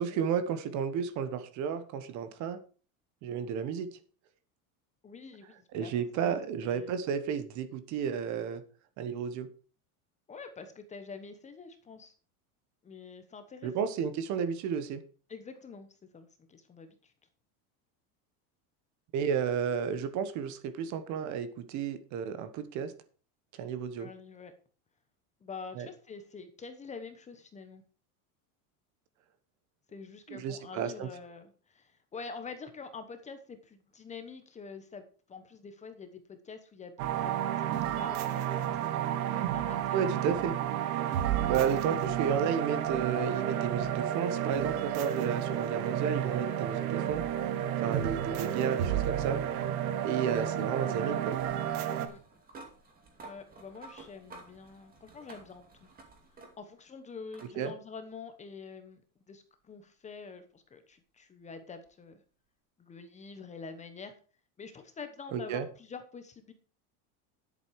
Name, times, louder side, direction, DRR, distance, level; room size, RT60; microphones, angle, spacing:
voice 1, 0.0-2.6 3.2-3.9 5.7-8.6 9.0-9.5 13.6-15.0 19.1-22.9 23.6-24.1 25.8-25.9 30.3-31.1 39.9-40.6 41.4-47.3 47.8-49.4 50.0-51.4 57.6-57.7 65.3-65.7, right 7 dB, 40° right, 12 dB, 1.2 m, -32 dB
voice 2, 5.0-7.0 10.3-12.1 12.8-13.9 15.3-15.9 16.1-17.1 23.9-24.5 25.4-27.8 29.9-40.0 52.0-52.2 53.2-55.9 56.6-59.0 59.3-62.2 62.8-64.1 64.6-66.5, left 5 dB, 15° left, 8 dB, 1.0 m, -46 dB
sound 1, 37.0-52.1, right 10 dB, 75° right, 1.7 m, -31 dB
sound 2, 48.0-56.9 57.3-57.5 58.9-59.0 61.8-61.9, right 3 dB, 20° right, 2.5 m, -54 dB
10.5 x 8.3 x 4.7 m, 0.39 s
supercardioid pair, 160°, 44 cm